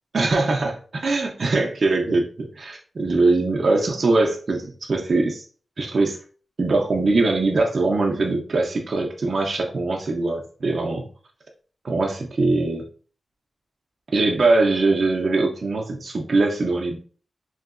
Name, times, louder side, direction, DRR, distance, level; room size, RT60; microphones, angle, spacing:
voice 1, 0.1-5.5 5.8-6.2 6.6-11.1 11.8-12.9 14.1-17.0, right 3 dB, 45° right, 0 dB, 0.4 m, -22 dB
2.9 x 2.6 x 2.4 m, 0.42 s
wide cardioid pair, 170°, 0 cm